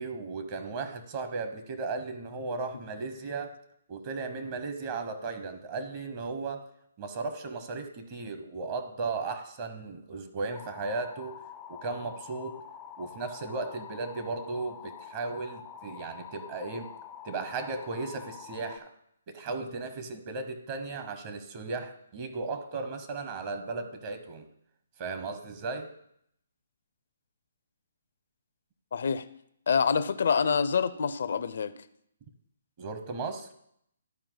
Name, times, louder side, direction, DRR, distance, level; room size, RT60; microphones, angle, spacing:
voice 1, 0.0-3.5 3.9-6.7 7.0-11.4 11.7-12.6 13.0-16.9 17.2-18.9 19.3-24.5 25.0-25.9 32.8-33.5, right 3 dB, 40° right, 7 dB, 1.0 m, -36 dB
sound 1, 10.5-18.8, left 8 dB, 20° left, 0.5 m, -46 dB
voice 2, 28.9-29.2 29.7-31.7, left 6 dB, 65° left, 12 dB, 0.6 m, -26 dB
12.0 x 4.4 x 4.0 m, 0.72 s
hypercardioid pair, 145°, 0 cm